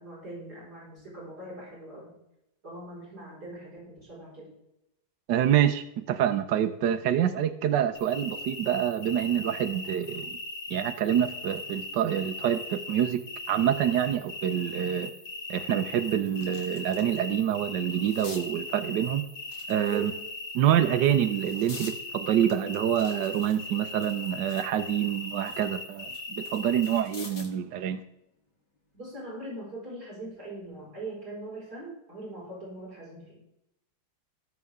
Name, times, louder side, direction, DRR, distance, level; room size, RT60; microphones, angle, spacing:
voice 1, 0.0-2.1 2.6-4.5 19.9-20.2 28.9-33.4, right 2 dB, 55° right, -6 dB, 5.6 m, -41 dB
voice 2, 5.3-10.3 10.7-15.1 15.5-19.2 19.7-20.1 20.5-28.0, right 10 dB, 70° right, 8 dB, 1.3 m, -26 dB
sound 1, 7.9-27.0, left 2 dB, 40° left, 2.0 m, -39 dB
sound 2, 15.2-15.3 15.7-17.2 17.5-18.5 19.4-20.3 20.9-22.0 22.5-24.7 25.1-27.6 29.0-29.2, left 3 dB, 60° left, 2.6 m, -47 dB
19.0 x 7.1 x 3.6 m, 0.85 s
omnidirectional pair, 2.1 m